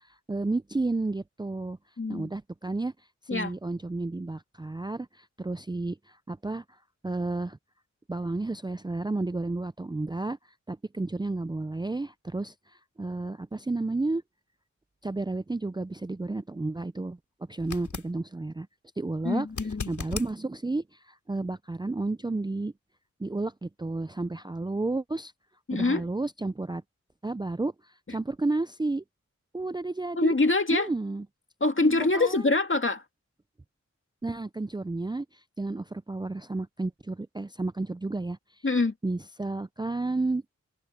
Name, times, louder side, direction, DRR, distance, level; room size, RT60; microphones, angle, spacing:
voice 1, 0.0-1.8 2.1-2.9 3.3-6.8 7.0-7.6 8.1-10.4 10.7-14.2 15.0-17.2 17.5-18.7 19.0-19.5 19.9-22.7 23.2-25.3 25.7-26.8 27.2-29.0 29.5-30.3 30.7-31.2 31.8-32.5 34.2-38.4 39.0-40.4, right 2 dB, 15° right, 0.5 m, -32 dB
voice 2, 2.0-2.3 3.3-3.5 19.2-20.2 25.7-26.0 30.2-30.9 31.6-33.0 38.6-38.9, left 3 dB, 45° left, 2.3 m, -25 dB
sound 1, 17.6-18.1 19.5-20.3 23.3-23.4, left 5 dB, 85° left, 3.1 m, -37 dB
cardioid pair, 50°, 29 cm